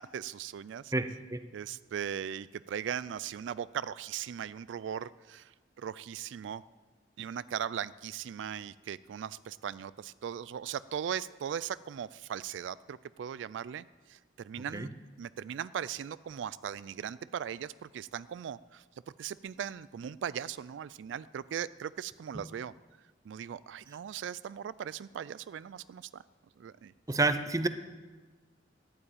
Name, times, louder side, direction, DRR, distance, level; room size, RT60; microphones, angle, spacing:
voice 1, 0.1-0.9 1.5-6.6 7.2-14.9 15.2-18.8 19.2-22.7 23.2-26.2 26.6-26.9, right 8 dB, 80° right, 18 dB, 0.3 m, -39 dB
voice 2, 0.9-1.5 14.7-14.9 27.1-27.7, right 3 dB, 20° right, 11 dB, 0.6 m, -29 dB
11.5 x 8.8 x 8.5 m, 1.3 s
head